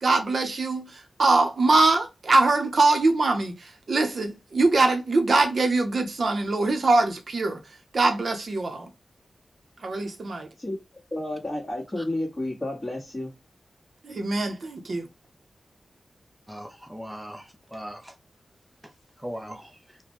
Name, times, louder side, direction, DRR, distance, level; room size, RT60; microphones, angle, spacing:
voice 1, 0.0-7.6 7.9-8.9 9.8-10.5 14.0-15.1, right 3 dB, 55° right, 0.7 m, -23 dB
voice 2, 11.1-13.3, left 1 dB, 20° left, 1.3 m, -31 dB
voice 3, 16.5-18.1 19.2-19.7, equal, 5° right, 0.5 m, -38 dB
4.1 x 2.2 x 2.9 m
wide cardioid pair, 125°, 0 cm